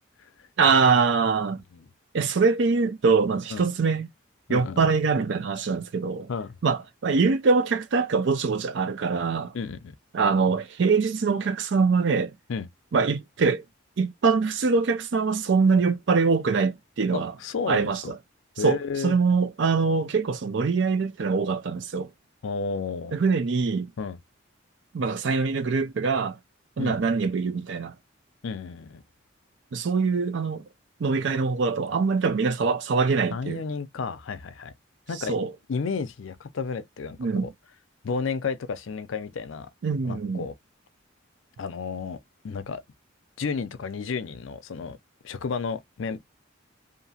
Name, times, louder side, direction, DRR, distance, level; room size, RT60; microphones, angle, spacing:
voice 1, 0.6-1.6 2.1-4.1 4.5-6.3 6.6-9.5 10.1-12.3 12.9-13.6 14.0-17.3 17.7-18.0 18.6-22.1 23.1-23.9 24.9-26.4 26.8-27.9 29.7-30.6 31.0-33.6 35.3-35.5 37.2-37.5 39.8-40.5, right 4 dB, 60° right, 0.4 m, -23 dB
voice 2, 4.5-4.9 6.3-6.5 9.5-9.9 12.5-12.7 17.1-18.1 18.6-19.2 22.4-23.2 24.0-24.2 26.8-27.0 28.4-29.0 33.3-34.7 35.1-35.3 35.7-37.5 38.0-39.7 40.0-40.5 41.6-42.2 42.4-42.8 43.4-45.0 45.2-46.2, left 5 dB, 75° left, 0.5 m, -32 dB
2.9 x 2.5 x 2.7 m
head